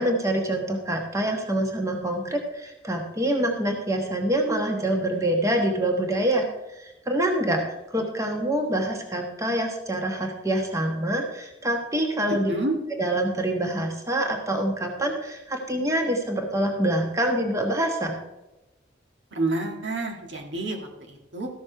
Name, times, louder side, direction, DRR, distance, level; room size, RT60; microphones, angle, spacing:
voice 1, 0.0-7.6 7.9-12.5 12.9-18.2, right 1 dB, 15° right, 2 dB, 1.2 m, -26 dB
voice 2, 12.3-12.7 19.3-21.5, right 2 dB, 80° right, 0 dB, 1.9 m, -29 dB
14.0 x 6.4 x 4.6 m, 0.99 s
head